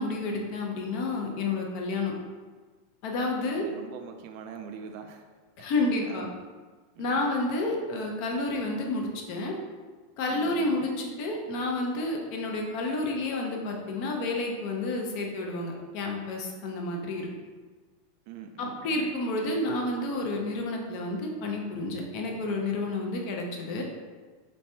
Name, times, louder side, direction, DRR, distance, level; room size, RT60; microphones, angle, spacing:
voice 1, 0.0-2.1 3.0-3.7 5.6-6.3 7.0-9.5 10.2-17.3 18.6-23.8, left 2 dB, 55° left, 0 dB, 0.6 m, -30 dB
voice 2, 3.5-5.2 6.1-6.3 7.0-7.3 10.3-10.9 18.3-19.1, right 7 dB, 55° right, 5 dB, 0.3 m, -43 dB
3.3 x 3.2 x 2.7 m, 1.4 s
supercardioid pair, 135°, 0 cm